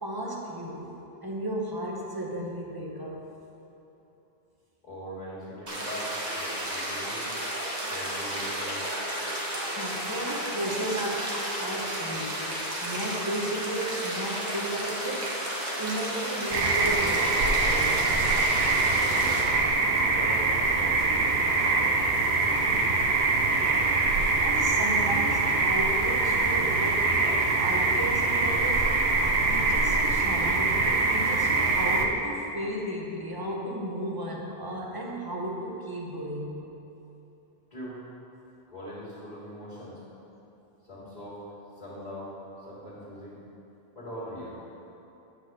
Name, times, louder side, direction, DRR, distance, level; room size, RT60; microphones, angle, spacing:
voice 1, 0.0-0.9 1.2-3.3 9.5-12.6 12.8-15.3 15.8-18.1 24.4-28.9 29.5-36.7, right 1 dB, 20° right, -2 dB, 1.0 m, -34 dB
voice 2, 4.8-7.3 7.8-8.9 18.6-19.4 20.0-21.1 21.5-21.9 22.2-23.8 37.7-38.0 38.7-40.0 40.8-41.4 41.8-43.4 43.9-44.6, equal, 45° left, -11 dB, 2.1 m, -41 dB
sound 1, 5.7-19.4, right 1 dB, 45° right, 1.5 m, -32 dB
sound 2, 16.5-32.1, right 3 dB, 85° right, 0.9 m, -24 dB
9.3 x 4.1 x 6.2 m, 3.0 s
omnidirectional pair, 1.1 m